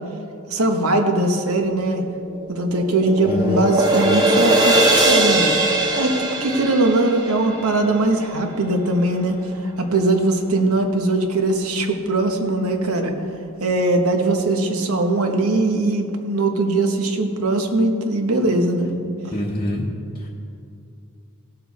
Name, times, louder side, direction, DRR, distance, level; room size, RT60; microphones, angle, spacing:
voice 1, 0.5-2.0 2.5-5.5 6.0-9.4 9.8-13.1 13.6-18.9, right 2 dB, 75° right, 4 dB, 1.2 m, -20 dB
sound 1, 2.2-8.5, right 2 dB, 20° right, 1.2 m, -20 dB
voice 2, 3.3-3.6 19.3-19.8 20.1-20.3, equal, 25° left, -3 dB, 0.9 m, -25 dB
16.5 x 6.9 x 4.1 m, 2.5 s
head